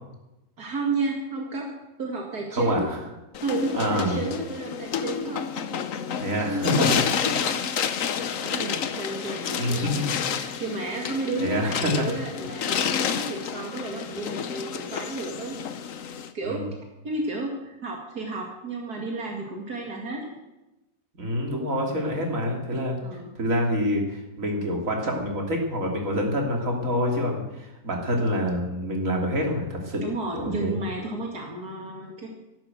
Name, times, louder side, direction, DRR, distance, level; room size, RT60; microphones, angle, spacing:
voice 1, 0.6-1.7 2.0-3.0 3.4-5.5 6.4-7.8 8.4-9.9 10.3-15.6 16.3-16.6 17.0-20.3 23.0-23.3 30.0-32.3, right 3 dB, 75° right, 0 dB, 2.7 m, -32 dB
voice 2, 2.5-2.8 3.7-4.2 6.2-7.0 9.5-10.0 11.4-12.1 16.4-16.6 21.2-22.9 23.4-30.1 30.3-30.8, equal, 55° right, 0 dB, 3.3 m, -26 dB
sound 1, 3.3-16.3, left 7 dB, 60° left, 1.2 m, -29 dB
14.0 x 12.0 x 7.8 m, 0.99 s
omnidirectional pair, 1.6 m